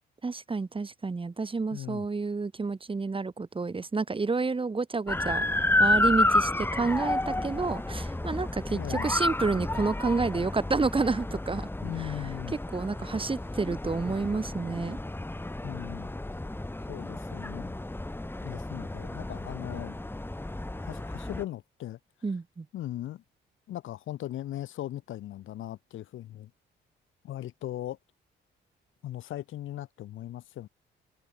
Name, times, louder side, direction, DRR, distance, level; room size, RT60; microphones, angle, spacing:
voice 1, 0.2-5.4 5.8-11.7 12.0-12.1 12.7-15.0 22.2-22.7, right 4 dB, 25° right, 3.7 m, -29 dB
voice 2, 1.7-2.1 8.7-9.2 11.8-12.6 15.6-16.1 16.9-17.8 18.4-20.0 20.8-22.0 22.7-23.2 23.7-26.5 27.2-28.0 29.0-30.7, left 13 dB, 80° left, 4.4 m, -38 dB
sound 1, 5.1-21.4, left 1 dB, 10° left, 4.4 m, -31 dB
cardioid pair, 90°, 20 cm